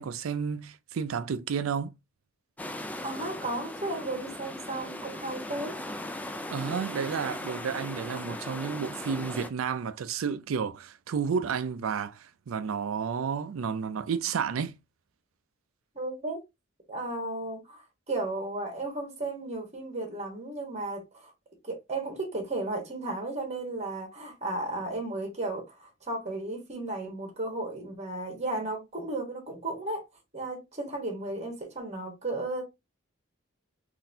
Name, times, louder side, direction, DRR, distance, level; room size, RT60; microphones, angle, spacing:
voice 1, 0.0-1.9 6.5-14.8, right 6 dB, 80° right, 0.4 m, -31 dB
sound 1, 2.6-9.5, left 1 dB, 5° left, 0.3 m, -38 dB
voice 2, 3.0-5.8 15.9-16.4 16.9-21.3 21.6-30.0 30.3-32.6, right 2 dB, 35° right, 1.3 m, -34 dB
3.9 x 2.7 x 2.6 m
head